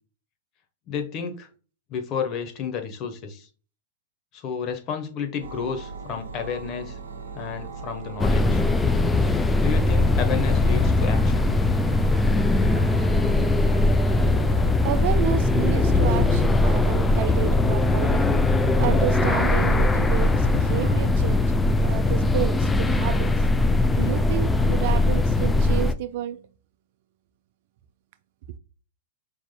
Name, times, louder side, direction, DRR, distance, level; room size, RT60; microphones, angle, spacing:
voice 1, 0.9-1.5 1.9-3.5 4.3-7.0 7.3-8.6 9.6-11.5, left 7 dB, 40° left, 1.2 m, -31 dB
sound 1, 5.4-21.0, right 5 dB, 85° right, 0.8 m, -37 dB
sound 2, 8.2-25.9, left 2 dB, 10° left, 0.4 m, -20 dB
voice 2, 14.4-26.5, right 12 dB, 60° right, 0.4 m, -31 dB
5.3 x 3.5 x 2.3 m
hypercardioid pair, 120°, 0 cm